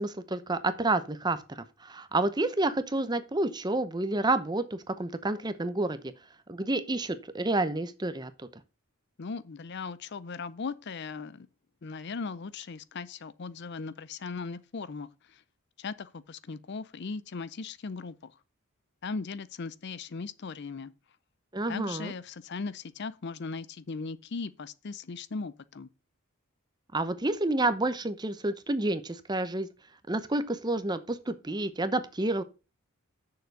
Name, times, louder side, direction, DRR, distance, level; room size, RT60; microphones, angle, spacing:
voice 1, 0.0-6.1 6.5-8.3 21.5-22.1 26.9-29.7 30.1-32.4, right 2 dB, 20° right, 0.7 m, -29 dB
voice 2, 9.2-11.5 11.8-15.4 15.8-18.3 19.0-20.9 21.7-25.9, left 4 dB, 50° left, 0.5 m, -38 dB
6.8 x 6.8 x 6.4 m
head